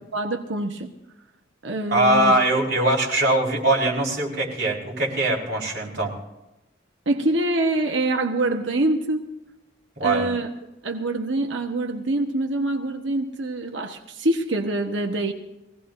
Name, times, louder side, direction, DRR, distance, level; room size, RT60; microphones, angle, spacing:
voice 1, 0.1-0.9 1.6-2.4 7.1-9.2 10.0-10.5 10.8-15.3, right 2 dB, 75° right, 4 dB, 1.2 m, -25 dB
voice 2, 1.9-6.1 10.0-10.3, right 1 dB, 55° right, -3 dB, 4.5 m, -21 dB
23.0 x 17.0 x 2.6 m, 0.96 s
head